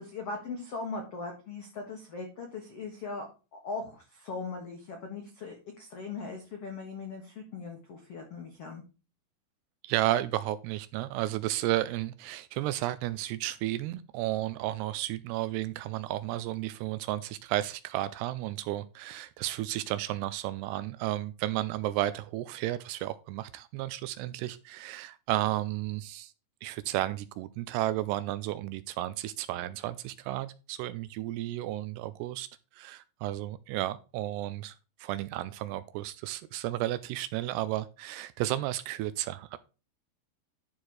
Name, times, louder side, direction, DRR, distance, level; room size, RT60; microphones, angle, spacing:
voice 1, 0.0-3.3 3.5-8.8, left 4 dB, 65° left, 1.4 m, -39 dB
voice 2, 9.8-26.3 26.6-32.5 32.7-34.8 35.0-39.6, right 15 dB, 85° right, 2.4 m, -33 dB
11.5 x 4.4 x 4.7 m
omnidirectional pair, 5.2 m